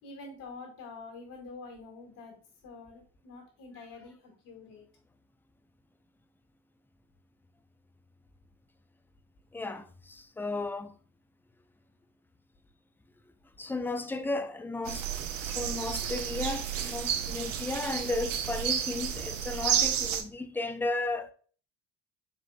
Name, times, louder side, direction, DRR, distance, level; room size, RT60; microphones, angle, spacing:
voice 1, 0.0-2.3 2.6-4.8, left 3 dB, 60° left, 2.2 m, -46 dB
voice 2, 9.5-10.9 13.6-15.1 15.4-21.3, left 2 dB, 5° left, 0.4 m, -34 dB
sound 1, 14.9-20.2, right 9 dB, 90° right, 0.5 m, -31 dB
5.0 x 3.7 x 2.2 m
hypercardioid pair, 65°, 36 cm